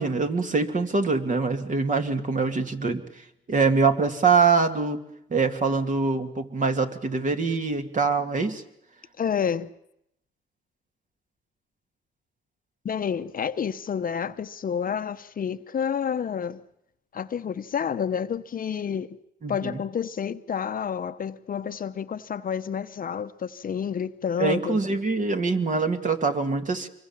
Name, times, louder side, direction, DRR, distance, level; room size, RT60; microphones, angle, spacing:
voice 1, 0.0-3.0 3.5-5.0 5.3-8.6 19.4-19.8 24.4-26.9, right 4 dB, 40° right, 2.5 m, -24 dB
voice 2, 9.2-9.7 12.8-16.6 17.1-19.2 19.5-25.0, left 7 dB, 45° left, 0.9 m, -29 dB
25.5 x 22.5 x 7.3 m
cardioid pair, 90°, 20 cm